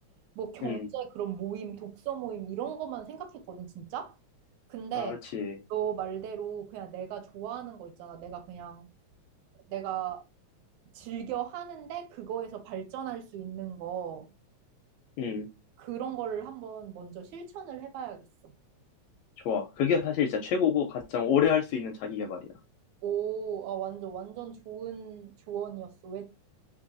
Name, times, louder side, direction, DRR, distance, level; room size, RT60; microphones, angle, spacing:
voice 1, 0.4-4.1 4.7-5.2 5.7-8.9 9.7-10.2 11.0-14.3 15.8-18.5 23.0-26.2, right 9 dB, 80° right, 2.0 m, -37 dB
voice 2, 5.0-5.6 15.2-15.5 19.4-22.5, left 7 dB, 80° left, 1.5 m, -28 dB
4.5 x 2.8 x 2.4 m
omnidirectional pair, 3.4 m